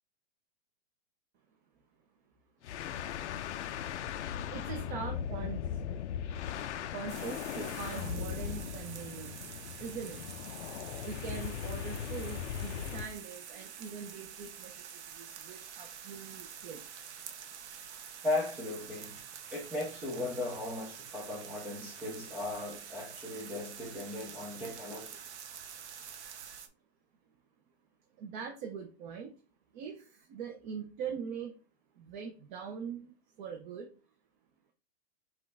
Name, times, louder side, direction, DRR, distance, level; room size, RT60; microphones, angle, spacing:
sound 1, 2.6-13.2, left 9 dB, 90° left, 0.6 m, -38 dB
voice 1, 4.2-5.8 6.8-10.2 11.0-16.8 28.2-29.3 29.7-31.5 31.9-33.9, right 6 dB, 45° right, 1.0 m, -42 dB
sound 2, 7.1-26.7, right 8 dB, 80° right, 0.9 m, -47 dB
voice 2, 18.2-19.2 19.5-25.2, left 2 dB, 5° right, 0.3 m, -37 dB
5.8 x 2.6 x 3.3 m
supercardioid pair, 155°, 34 cm